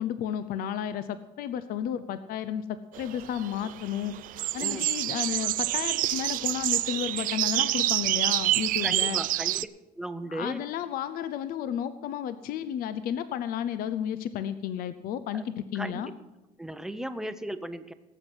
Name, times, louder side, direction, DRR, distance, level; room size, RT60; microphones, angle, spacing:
voice 1, 0.0-4.1 4.5-9.2 10.3-16.1, left 9 dB, 70° left, 13 dB, 0.7 m, -32 dB
sound 1, 2.9-9.6, right 16 dB, 60° right, 0.4 m, -28 dB
voice 2, 8.8-9.7 10.0-10.6 15.3-15.4 15.7-16.1 16.6-17.9, right 1 dB, 5° right, 10 dB, 0.7 m, -36 dB
18.5 x 8.0 x 6.1 m, 1.0 s
cardioid pair, 160°, 15 cm